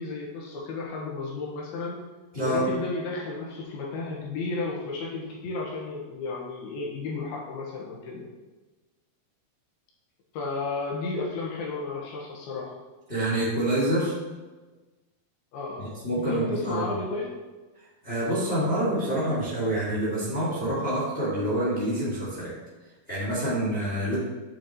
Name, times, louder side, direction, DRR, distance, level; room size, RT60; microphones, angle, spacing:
voice 1, 0.0-2.1 2.4-8.3 10.3-12.7 15.5-15.9 16.2-17.4, left 3 dB, 80° left, -2 dB, 3.1 m, -33 dB
voice 2, 13.1-14.1 15.8-16.8 18.0-22.5 23.1-24.2, right 1 dB, 30° left, -7 dB, 1.1 m, -27 dB
8.5 x 6.4 x 2.9 m, 1.2 s
omnidirectional pair, 4.4 m